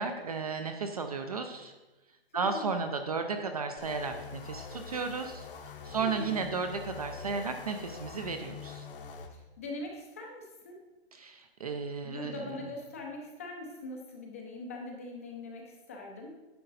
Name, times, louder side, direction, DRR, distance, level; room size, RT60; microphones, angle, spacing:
voice 1, 0.0-1.7 2.3-5.5 5.8-8.9 11.1-12.5, right 4 dB, 35° right, 6 dB, 0.5 m, -34 dB
voice 2, 2.3-2.7 6.0-6.4 9.3-10.7 12.0-16.3, left 2 dB, 15° left, 1 dB, 0.5 m, -42 dB
sound 1, 3.8-9.3, left 5 dB, 55° left, 1.0 m, -44 dB
10.0 x 6.4 x 4.0 m, 1.1 s
hypercardioid pair, 175°, 32 cm